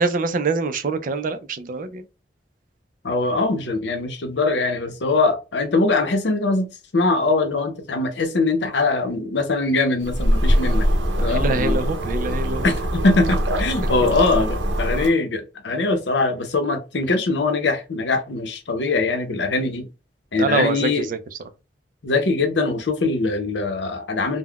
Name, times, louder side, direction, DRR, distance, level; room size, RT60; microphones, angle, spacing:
voice 1, 0.0-2.0 11.2-12.7 20.4-21.2, right 3 dB, 50° right, 0.4 m, -24 dB
voice 2, 3.0-6.7 6.9-10.9 11.2-11.8 12.6-19.9 20.3-21.1 22.0-24.4, left 3 dB, 75° left, 0.7 m, -22 dB
sound 1, 10.0-15.1, equal, 90° right, 0.6 m, -22 dB
3.5 x 2.1 x 2.3 m
head